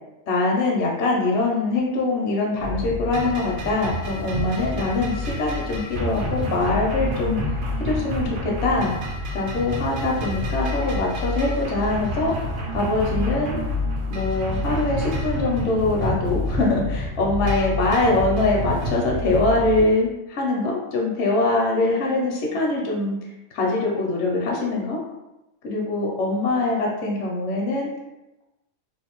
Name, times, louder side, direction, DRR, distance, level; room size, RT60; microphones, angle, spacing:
voice 1, 0.3-8.9 9.3-12.3 12.7-13.6 14.1-23.2 23.5-25.0 25.6-27.9, left 2 dB, 65° left, -2 dB, 0.7 m, -23 dB
sound 1, 2.6-19.8, left 1 dB, 80° right, 0.4 m, -28 dB
2.6 x 2.3 x 2.9 m, 0.97 s
omnidirectional pair, 1.5 m